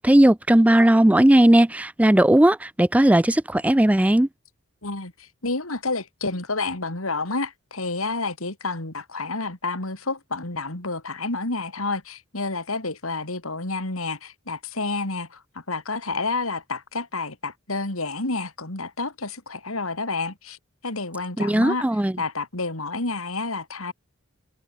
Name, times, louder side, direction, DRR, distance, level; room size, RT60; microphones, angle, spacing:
voice 1, 0.0-4.3 21.4-22.1, right 1 dB, 5° right, 0.4 m, -17 dB
voice 2, 4.8-20.6 20.8-21.9 22.2-23.9, left 3 dB, 85° left, 4.1 m, -29 dB
head